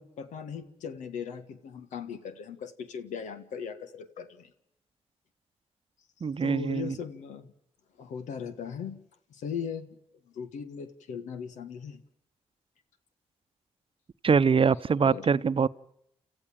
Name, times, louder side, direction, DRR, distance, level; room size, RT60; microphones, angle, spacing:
voice 1, 0.0-4.5 6.4-7.5 8.0-9.0 9.3-10.0 10.2-12.0 14.9-15.3, left 7 dB, 90° left, 1.6 m, -38 dB
voice 2, 6.2-7.0 14.2-15.7, right 5 dB, 50° right, 0.8 m, -23 dB
29.5 x 14.0 x 8.8 m
supercardioid pair, 50°, 12 cm